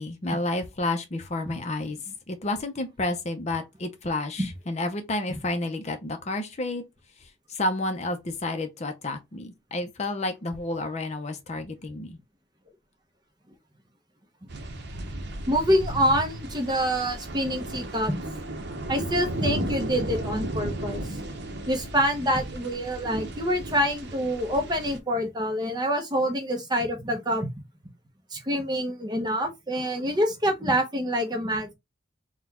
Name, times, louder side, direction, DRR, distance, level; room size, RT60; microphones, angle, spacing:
voice 1, 0.0-2.0 2.3-6.8 7.2-12.2, left 2 dB, 35° left, 0.6 m, -30 dB
sound 1, 14.5-25.0, right 1 dB, 55° right, 0.9 m, -34 dB
voice 2, 15.5-18.2 18.9-21.3 21.7-27.5 28.3-31.7, equal, 20° right, 0.8 m, -26 dB
4.2 x 2.3 x 4.2 m
head